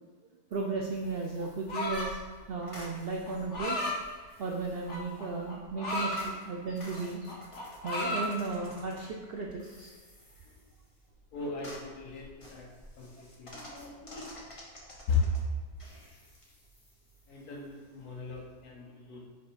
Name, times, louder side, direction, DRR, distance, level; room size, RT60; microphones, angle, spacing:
sound 1, 0.5-18.7, equal, 25° left, 1.0 m, -53 dB
voice 1, 0.5-2.2 2.5-3.8 4.4-7.2 7.8-9.9, right 3 dB, 70° right, 0 dB, 0.5 m, -35 dB
sound 2, 1.7-2.2 3.3-4.0 4.9-6.2 6.7-7.0 7.2-8.3, left 1 dB, 55° left, 1.5 m, -33 dB
voice 2, 11.3-12.7 13.0-13.1 13.4-14.3 15.1-15.3 17.3-19.3, left 5 dB, 75° left, -1 dB, 1.6 m, -35 dB
6.2 x 3.6 x 4.5 m, 1.4 s
omnidirectional pair, 1.6 m